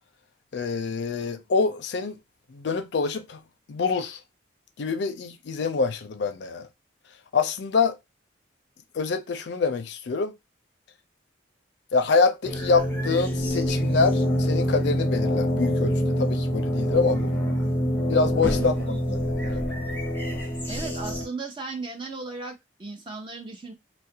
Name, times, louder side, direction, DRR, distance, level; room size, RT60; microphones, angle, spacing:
voice 1, 0.5-2.2 2.5-3.4 3.7-4.2 4.8-6.7 7.3-8.0 8.9-10.3 11.9-17.3 18.1-18.7 19.1-19.7, left 4 dB, 60° left, 0.4 m, -25 dB
sound 1, 12.4-21.3, equal, 10° left, 0.7 m, -26 dB
voice 2, 18.5-19.3 20.7-23.7, right 3 dB, 25° right, 0.5 m, -36 dB
2.4 x 2.1 x 2.7 m
head